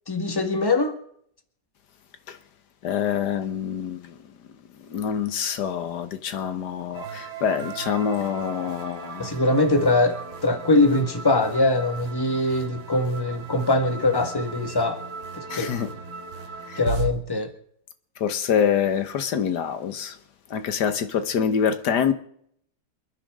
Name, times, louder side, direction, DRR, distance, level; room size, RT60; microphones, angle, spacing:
voice 1, 0.1-0.9 9.2-15.0 15.3-15.7 16.8-17.5, left 2 dB, 15° left, 1.6 m, -22 dB
voice 2, 2.8-4.2 4.7-9.3 15.5-15.9 16.7-16.8 18.2-20.2 20.5-22.1, left 8 dB, 65° left, 1.6 m, -26 dB
sound 1, 6.9-17.1, right 4 dB, 90° right, 2.5 m, -36 dB
28.0 x 9.9 x 3.7 m
omnidirectional pair, 2.0 m